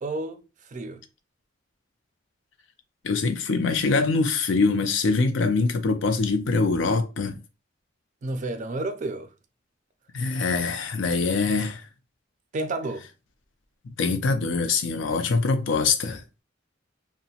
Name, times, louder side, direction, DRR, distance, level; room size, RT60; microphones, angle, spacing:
voice 1, 0.0-1.0 8.2-9.3 12.5-13.1, right 2 dB, 40° right, 0.4 m, -31 dB
voice 2, 3.0-7.4 10.1-11.8 13.8-16.2, left 4 dB, 80° left, 0.5 m, -24 dB
2.7 x 2.1 x 2.8 m
head